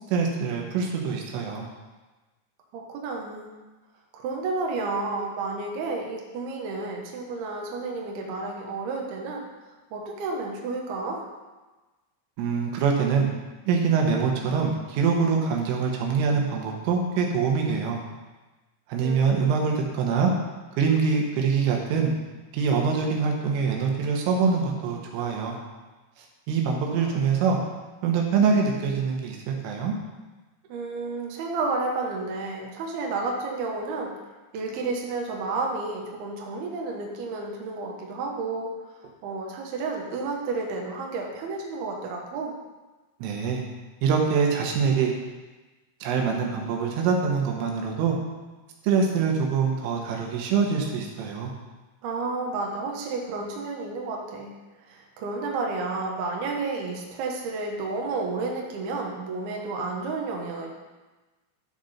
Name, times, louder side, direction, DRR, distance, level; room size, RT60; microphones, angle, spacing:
voice 1, 0.1-1.7 12.4-13.3 13.7-18.0 18.9-20.3 20.8-22.1 22.5-25.6 26.5-27.6 28.0-29.9 43.2-43.6 44.0-45.1 46.0-48.2 48.8-51.5, right 5 dB, 85° right, 0 dB, 3.8 m, -24 dB
voice 2, 2.7-3.6 4.1-9.4 9.9-11.3 19.0-19.4 26.7-27.3 30.7-34.1 34.5-38.7 39.2-42.6 52.0-54.6 54.9-60.7, right 3 dB, 65° right, 0 dB, 2.8 m, -31 dB
12.0 x 6.6 x 4.3 m, 1.2 s
omnidirectional pair, 5.6 m